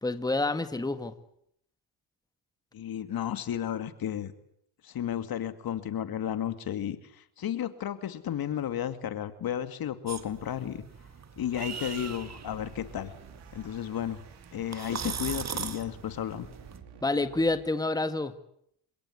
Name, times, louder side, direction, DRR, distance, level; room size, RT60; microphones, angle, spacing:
voice 1, 0.0-1.1 17.0-18.3, left 2 dB, 10° left, 10 dB, 1.8 m, -28 dB
voice 2, 2.7-4.3 4.8-10.8 11.4-13.1 13.5-14.2 14.5-16.5, left 10 dB, 60° left, 11 dB, 2.4 m, -33 dB
sound 1, 10.1-16.8, right 6 dB, 40° right, 2.3 m, -40 dB
sound 2, 11.7-17.7, right 7 dB, 80° right, 4.4 m, -53 dB
28.5 x 17.0 x 9.9 m, 0.73 s
cardioid pair, 95°, 40 cm